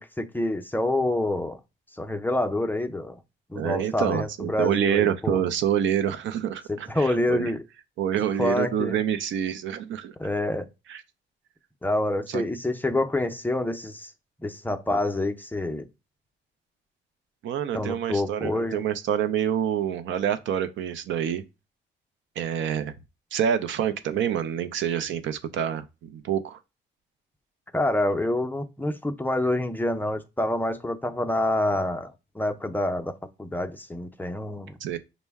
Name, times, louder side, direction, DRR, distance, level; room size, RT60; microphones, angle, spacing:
voice 1, 0.0-1.6 1.9-3.2 3.5-5.4 6.7-7.6 8.2-9.0 10.2-10.7 11.8-14.1 14.4-15.9 17.7-18.8 27.7-34.8, left 1 dB, 10° left, 0.5 m, -27 dB
voice 2, 3.6-7.5 8.0-10.1 10.9-11.0 12.3-12.4 17.4-21.4 22.4-22.9 23.3-26.6 34.8-35.0, right 9 dB, 75° right, 0.5 m, -27 dB
5.3 x 2.1 x 3.4 m
cardioid pair, 90°, 20 cm